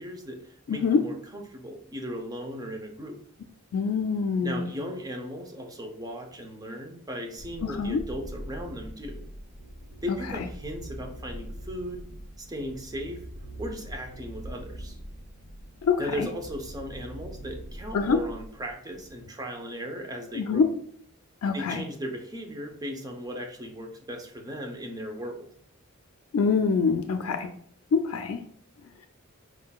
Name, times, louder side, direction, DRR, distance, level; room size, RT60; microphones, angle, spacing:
voice 1, 0.0-3.2 4.4-9.2 10.0-12.0 12.4-13.2 13.6-15.0 16.0-20.6 21.5-25.5, equal, 20° right, 3 dB, 0.6 m, -37 dB
voice 2, 0.7-1.0 3.7-4.7 7.6-8.0 15.8-16.3 17.9-18.2 20.3-20.7 21.4-21.8 26.3-27.5 27.9-28.4, left 5 dB, 85° left, 6 dB, 0.4 m, -25 dB
sound 1, 7.4-19.1, right 1 dB, 50° right, 1.0 m, -42 dB
4.5 x 3.7 x 2.3 m, 0.63 s
head